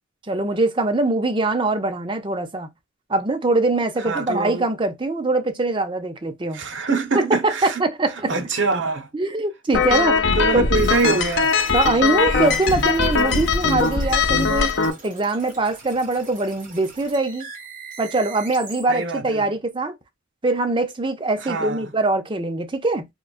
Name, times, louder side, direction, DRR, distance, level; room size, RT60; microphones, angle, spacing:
voice 1, 0.3-2.7 3.1-6.6 7.1-8.3 9.1-10.2 10.5-10.7 11.7-17.5 18.0-19.9 20.4-23.1, right 2 dB, 25° right, 0.5 m, -22 dB
voice 2, 4.1-4.6 6.5-7.8 8.3-9.1 10.3-11.5 18.9-19.5 21.4-21.8, right 4 dB, 65° right, 0.7 m, -24 dB
sound 1, 9.7-14.9, left 5 dB, 65° left, 0.6 m, -20 dB
sound 2, 10.7-18.8, right 5 dB, 40° right, 1.3 m, -41 dB
3.7 x 2.3 x 2.3 m
head